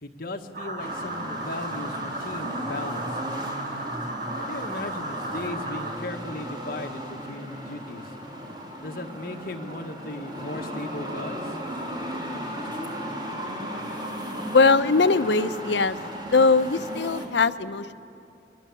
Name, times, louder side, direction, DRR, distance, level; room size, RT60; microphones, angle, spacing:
voice 1, 0.0-3.2 4.4-8.0 8.8-11.6, left 2 dB, 55° left, 4 dB, 1.7 m, -37 dB
sound 1, 0.5-5.9, right 1 dB, 50° right, 4.0 m, -34 dB
sound 2, 0.8-17.3, equal, 25° right, 3.2 m, -36 dB
voice 2, 14.5-16.0 16.3-17.9, left 4 dB, 80° left, 12 dB, 0.8 m, -20 dB
29.5 x 22.5 x 8.5 m, 2.6 s
head